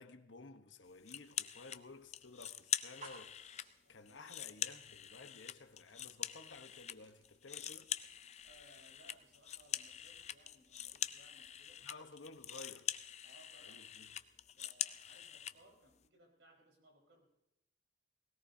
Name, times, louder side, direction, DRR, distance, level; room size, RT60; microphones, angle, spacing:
voice 1, 0.0-3.4 3.9-7.9 11.8-12.9 13.6-14.1, left 3 dB, 80° left, 1.1 m, -54 dB
sound 1, 1.1-1.8 2.1-3.7 4.1-7.0 7.2-15.6, left 10 dB, 35° left, 0.4 m, -44 dB
sound 2, 2.9-12.5, right 2 dB, 40° right, 3.1 m, -64 dB
voice 2, 3.8-4.3 8.4-11.8 13.2-14.2 14.5-17.3, right 1 dB, 80° right, 4.7 m, -65 dB
19.5 x 17.5 x 2.7 m
head